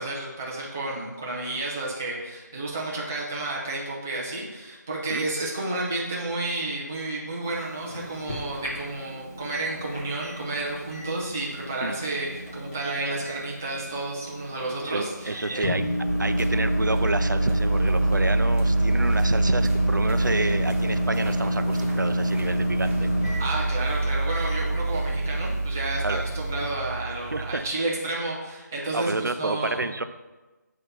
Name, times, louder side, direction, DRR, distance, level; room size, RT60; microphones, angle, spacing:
voice 1, 0.0-15.7 23.4-29.9, right 2 dB, 10° right, -5 dB, 0.3 m, -31 dB
Microwave oven, 7.4-26.7, equal, 15° left, 0.9 m, -30 dB
voice 2, 14.8-15.9 16.2-23.1 26.0-26.2 27.3-27.6 28.8-30.0, right 2 dB, 80° right, 10 dB, 0.5 m, -29 dB
sound 1, 16.1-27.7, right 2 dB, 40° right, 0.9 m, -26 dB
7.9 x 2.8 x 5.2 m, 1.2 s
figure-of-eight pair, 160°, 10 cm